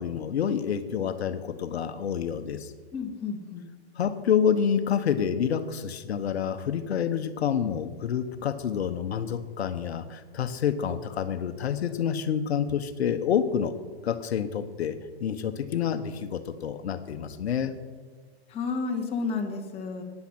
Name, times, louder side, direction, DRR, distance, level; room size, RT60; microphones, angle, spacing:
voice 1, 0.0-2.7 4.0-13.7 14.0-14.9 15.2-17.7, left 8 dB, 75° left, 10 dB, 1.0 m, -28 dB
voice 2, 2.9-3.6 18.5-20.0, left 4 dB, 20° left, 1 dB, 1.6 m, -31 dB
11.5 x 9.8 x 5.9 m, 1.4 s
hypercardioid pair, 145°, 32 cm